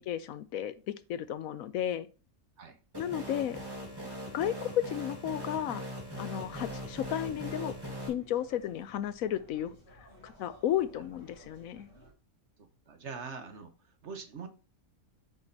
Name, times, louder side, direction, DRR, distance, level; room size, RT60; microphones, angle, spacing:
voice 1, 0.0-2.1 3.0-3.6 4.3-5.8 6.2-7.7 8.1-9.8 10.2-11.9, left 10 dB, 75° left, 14 dB, 1.0 m, -33 dB
sound 1, 2.9-8.1, equal, 15° right, 2.0 m, -40 dB
sound 2, 6.4-12.1, equal, 45° left, 3.3 m, -56 dB
voice 2, 12.6-14.5, right 5 dB, 55° right, 7 dB, 1.2 m, -44 dB
8.7 x 6.2 x 2.8 m, 0.34 s
omnidirectional pair, 1.5 m